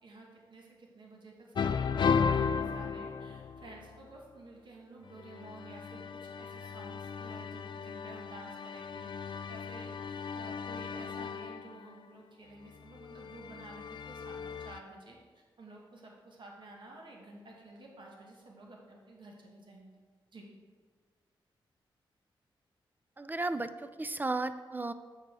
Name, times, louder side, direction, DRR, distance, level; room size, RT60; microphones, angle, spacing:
voice 1, 0.0-20.0 20.3-20.5, right 2 dB, 55° right, -1 dB, 2.1 m, -52 dB
sound 1, 1.5-3.9 5.2-11.8 12.9-14.8, left 6 dB, 55° left, 0.4 m, -35 dB
voice 2, 23.2-24.9, right 2 dB, 20° right, 12 dB, 0.5 m, -34 dB
8.7 x 6.7 x 4.8 m, 1.5 s
cardioid pair, 65°, 9 cm